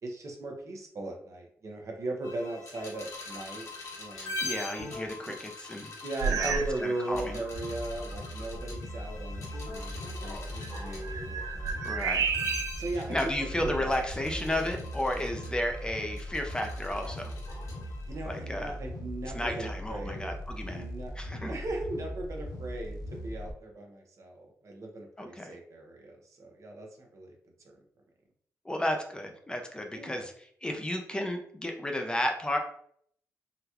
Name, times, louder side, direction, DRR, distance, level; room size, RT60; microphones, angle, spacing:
voice 1, 0.0-3.7 4.0-4.4 5.3-5.4 6.0-11.9 12.8-13.9 18.1-20.3 20.7-21.1 21.5-27.3 27.6-27.7 29.9-30.3, right 2 dB, 55° right, 2 dB, 0.8 m, -38 dB
sound 1, 2.2-18.2, left 2 dB, 55° left, 1.3 m, -43 dB
voice 2, 4.1-5.9 6.3-7.4 11.8-12.2 13.1-17.3 18.3-18.7 19.3-20.9 21.2-21.5 25.2-25.6 28.6-30.3 30.6-32.6, left 1 dB, 15° left, 3 dB, 0.5 m, -33 dB
sound 2, 6.2-6.8 7.1-7.5 8.1-8.2 10.6-12.9 13.5-14.5, right 6 dB, 70° right, 0.3 m, -32 dB
sound 3, 7.5-23.5, equal, 80° left, 0.6 m, -40 dB
3.8 x 2.2 x 2.9 m, 0.64 s
cardioid pair, 70°, 6 cm